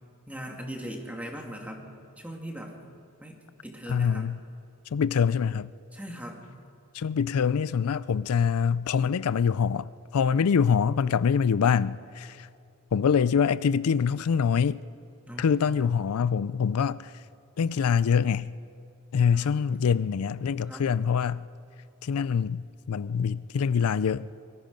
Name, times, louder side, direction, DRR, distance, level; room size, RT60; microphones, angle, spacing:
voice 1, 0.3-1.9 2.2-2.7 3.2-4.3 5.9-6.5 15.3-15.9 19.3-20.0 20.6-20.9, equal, 5° right, 2.3 m, -40 dB
voice 2, 3.9-4.4 4.9-5.7 6.9-12.5 12.9-14.8 15.4-17.1 17.6-18.5 19.1-21.4 22.0-24.3, left 6 dB, 80° left, 0.4 m, -25 dB
24.0 x 22.5 x 5.3 m
head